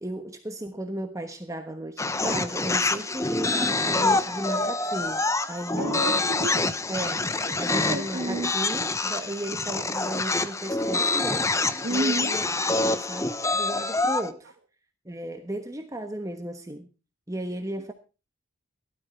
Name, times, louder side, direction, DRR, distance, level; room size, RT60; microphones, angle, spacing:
voice 1, 0.0-6.0 6.9-12.4 12.8-14.5 15.0-16.9 17.3-17.9, right 1 dB, 15° right, 1.2 m, -35 dB
sound 1, 2.0-14.3, left 3 dB, 15° left, 0.7 m, -26 dB
voice 2, 5.8-6.7 7.4-8.5 11.8-12.4, right 1 dB, 55° right, 1.2 m, -31 dB
16.5 x 12.5 x 4.4 m
head